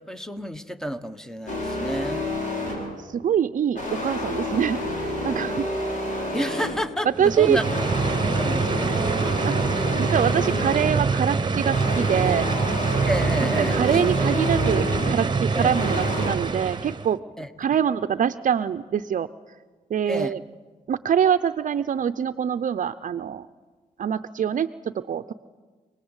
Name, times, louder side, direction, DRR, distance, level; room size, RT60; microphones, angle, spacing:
voice 1, 0.0-2.3 6.3-7.6 8.2-9.4 13.1-14.0 15.5-15.7 17.4-17.5 20.1-20.3, equal, 5° left, 11 dB, 1.3 m, -30 dB
sound 1, 1.5-3.0 3.8-7.0 7.6-11.1 11.6-15.3 15.7-16.3, left 1 dB, 60° left, 6.4 m, -29 dB
voice 2, 2.7-5.7 7.2-7.6 8.9-9.7 10.0-12.5 13.4-17.2 17.6-19.3 19.9-20.4 20.9-23.5 24.0-25.3, right 8 dB, 60° right, 10 dB, 0.6 m, -24 dB
sound 2, 7.1-17.1, right 4 dB, 30° right, 1.2 m, -25 dB
27.0 x 19.0 x 8.2 m, 1.4 s
cardioid pair, 85°, 15 cm